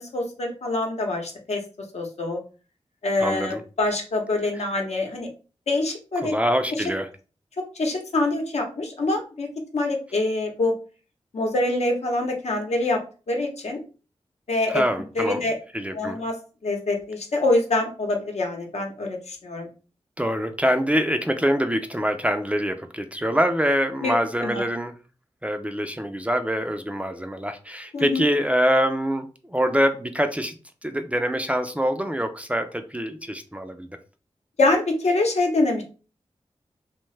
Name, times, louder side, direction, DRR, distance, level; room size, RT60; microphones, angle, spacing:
voice 1, 0.0-1.6 1.9-2.4 3.0-5.3 5.7-6.3 6.7-6.8 7.6-9.5 9.7-10.7 11.3-13.0 13.3-13.8 14.5-14.8 15.1-15.6 15.9-16.4 16.6-19.7 24.0-24.1 24.4-24.6 27.9-28.2 34.6-35.8, left 2 dB, 70° left, 2 dB, 0.8 m, -25 dB
voice 2, 3.2-3.6 6.2-7.1 14.7-15.4 15.7-16.2 20.2-24.9 25.4-30.5 30.8-34.0, equal, 10° right, 7 dB, 0.3 m, -24 dB
2.7 x 2.2 x 3.2 m, 0.35 s
cardioid pair, 60°, 11 cm